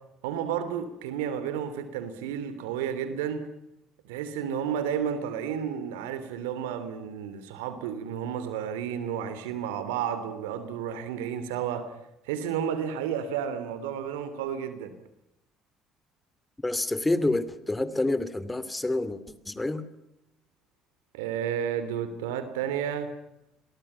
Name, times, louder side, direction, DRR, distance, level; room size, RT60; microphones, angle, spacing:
voice 1, 0.2-3.5 4.0-11.9 12.2-14.9 21.1-23.1, right 8 dB, 80° right, 12 dB, 3.0 m, -32 dB
voice 2, 16.6-19.9, left 2 dB, 15° left, 15 dB, 2.6 m, -28 dB
29.5 x 23.0 x 5.8 m, 0.86 s
hypercardioid pair, 60°, 0 cm